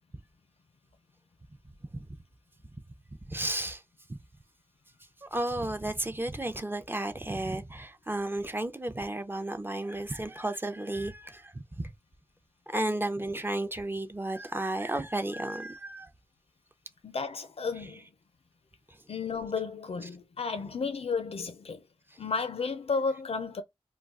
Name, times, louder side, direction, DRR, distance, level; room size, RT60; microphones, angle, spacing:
voice 1, 3.3-3.8 4.1-4.2 5.2-11.9 12.7-16.1 17.8-17.9 18.9-19.0 20.0-20.1 22.1-22.2, right 1 dB, 20° right, 0.4 m, -33 dB
voice 2, 17.0-18.1 19.1-21.8 22.2-23.6, left 4 dB, 90° left, 0.5 m, -33 dB
2.3 x 2.2 x 3.5 m
wide cardioid pair, 60°, 10 cm